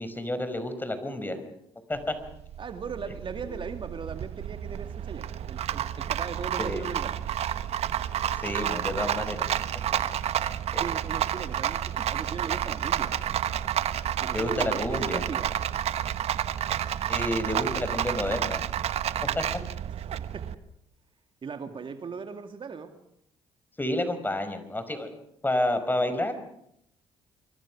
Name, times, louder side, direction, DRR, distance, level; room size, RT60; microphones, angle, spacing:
voice 1, 0.0-1.4 1.9-2.1 3.5-3.6 6.6-6.8 8.4-9.5 10.7-10.8 14.3-15.2 17.1-18.6 19.4-19.5 23.8-25.1 25.4-26.3, left 1 dB, 15° left, 10 dB, 5.3 m, -29 dB
Rattle, 2.0-20.6, right 10 dB, 60° right, 1.2 m, -30 dB
voice 2, 2.6-7.2 10.8-13.1 14.2-15.5 20.0-20.6 21.4-22.9, right 5 dB, 45° right, 7 dB, 2.4 m, -38 dB
27.5 x 24.0 x 6.2 m, 0.75 s
hypercardioid pair, 60°, 12 cm